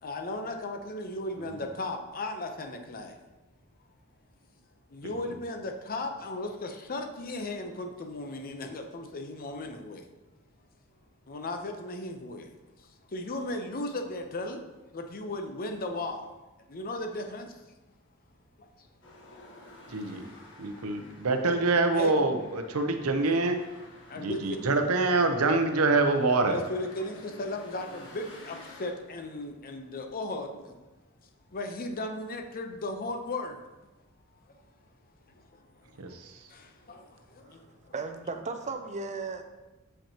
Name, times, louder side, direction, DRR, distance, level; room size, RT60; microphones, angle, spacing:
voice 1, 0.0-3.2 4.9-10.1 11.3-14.6 14.9-16.3 16.7-17.6 18.6-18.9 19.4-19.6 21.9-22.3 24.0-24.6 26.5-30.8 31.5-33.6 34.5-34.6 35.3-35.4 35.8-36.2 36.5-37.9, left 2 dB, 40° left, 4 dB, 0.7 m, -36 dB
sound 1, 19.0-28.9, left 2 dB, 55° left, 1.3 m, -52 dB
voice 2, 19.9-20.2 20.6-23.6 24.2-26.6 36.0-36.5, right 3 dB, 70° right, 6 dB, 0.7 m, -26 dB
voice 3, 37.9-39.4, right 4 dB, 30° right, 7 dB, 0.5 m, -35 dB
7.2 x 5.5 x 2.9 m, 1.1 s
head